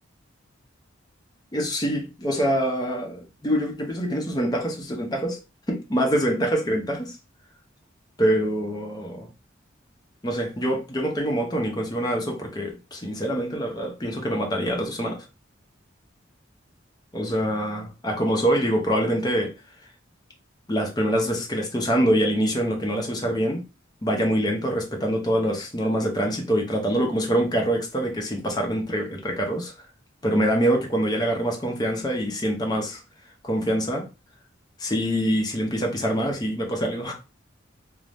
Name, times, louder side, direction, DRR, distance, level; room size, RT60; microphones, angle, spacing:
voice 1, 1.5-5.4 5.7-7.2 8.2-9.3 10.2-15.3 17.1-19.5 20.7-23.6 24.0-29.7 30.2-33.0 33.4-34.0 34.8-37.1, equal, 20° left, 0.6 m, -25 dB
2.6 x 2.0 x 3.3 m
head